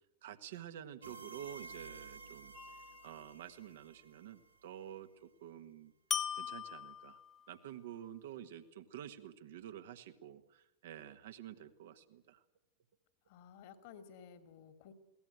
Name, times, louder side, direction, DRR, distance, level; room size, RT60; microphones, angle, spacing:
voice 1, 0.2-2.5 3.0-5.9 6.4-7.2 7.5-12.4, right 10 dB, 55° right, 9 dB, 1.6 m, -49 dB
sound 1, 1.0-4.7, right 4 dB, 80° right, 2.4 m, -53 dB
sound 2, 2.5-3.2 6.1-7.5, left 8 dB, 25° left, 1.5 m, -40 dB
voice 2, 13.3-14.9, left 7 dB, 50° left, 9 dB, 2.4 m, -55 dB
22.0 x 18.0 x 9.1 m, 0.83 s
figure-of-eight pair, 90°, 0 cm